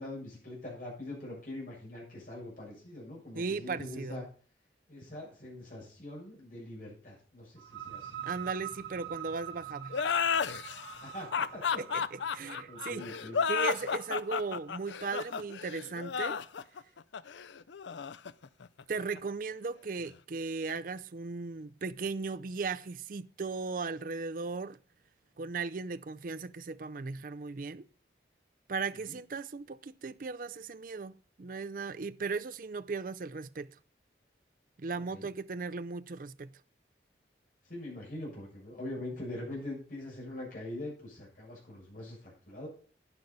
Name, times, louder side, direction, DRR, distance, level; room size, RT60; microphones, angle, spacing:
voice 1, 0.0-4.2 4.9-8.1 11.0-11.8 12.3-13.4 29.0-29.2 35.1-35.3 37.6-42.7, left 1 dB, 45° left, 7.0 m, -43 dB
voice 2, 3.3-4.2 8.2-9.9 11.8-13.0 13.5-16.4 18.9-24.8 25.4-27.9 28.7-33.7 34.8-36.5, right 4 dB, 50° right, 0.5 m, -37 dB
sound 1, 7.6-15.1, right 11 dB, 85° right, 1.0 m, -45 dB
sound 2, 9.9-19.2, left 6 dB, 85° left, 0.5 m, -33 dB
11.5 x 9.4 x 4.1 m
head